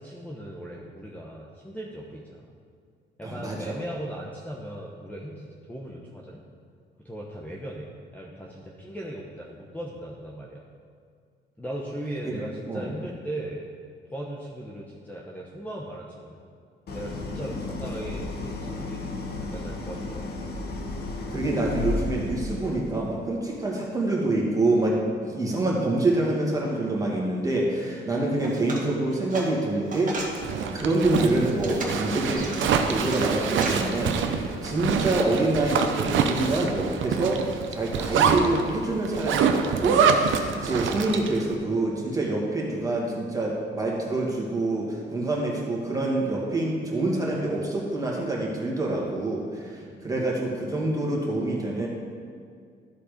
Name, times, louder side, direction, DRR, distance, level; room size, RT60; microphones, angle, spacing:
voice 1, 0.0-2.5 3.2-6.4 7.0-10.6 11.6-13.6 14.1-16.4 16.9-19.0 19.4-20.3 49.8-50.1, right 1 dB, 10° left, -3 dB, 1.0 m, -38 dB
voice 2, 3.2-3.8 12.2-12.9 21.3-30.2 30.5-37.4 37.7-51.9, right 2 dB, 15° right, -3 dB, 2.2 m, -26 dB
Idling, 16.9-22.9, left 2 dB, 55° left, 1.2 m, -33 dB
sound 1, 28.3-30.4 30.9-33.7, right 2 dB, 40° right, 1.8 m, -35 dB
Zipper (clothing), 30.2-41.4, right 6 dB, 75° right, 0.7 m, -26 dB
13.0 x 4.3 x 5.1 m, 2.1 s
cardioid pair, 90°, 20 cm